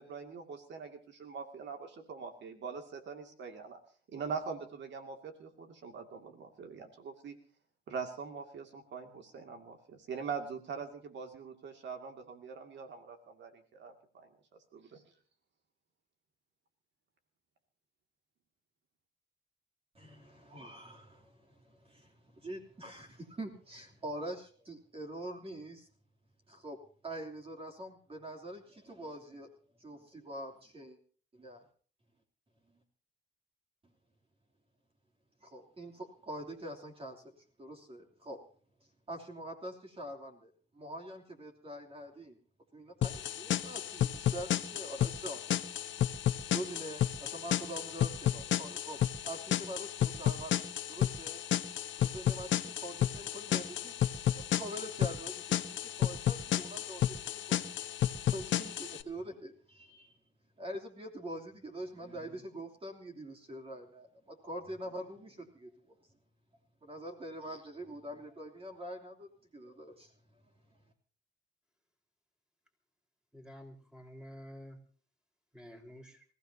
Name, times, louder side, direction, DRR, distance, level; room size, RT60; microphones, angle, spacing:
voice 1, 0.0-3.8 4.1-7.4 7.9-14.3 14.7-15.0, right 5 dB, 65° right, 5 dB, 2.4 m, -43 dB
voice 2, 19.9-25.9 26.5-29.5 29.8-31.0 31.3-31.6 35.4-38.4 39.1-42.4 42.7-45.4 46.5-51.4 52.0-57.7 58.3-60.1 60.6-66.0 66.8-70.1, right 1 dB, 30° right, 2 dB, 3.1 m, -45 dB
sound 1, 43.0-59.0, left 11 dB, 70° left, 1.2 m, -32 dB
voice 3, 73.3-74.8 75.5-76.2, equal, 5° right, 3 dB, 4.6 m, -50 dB
27.0 x 16.0 x 2.8 m, 0.43 s
cardioid pair, 90°, 20 cm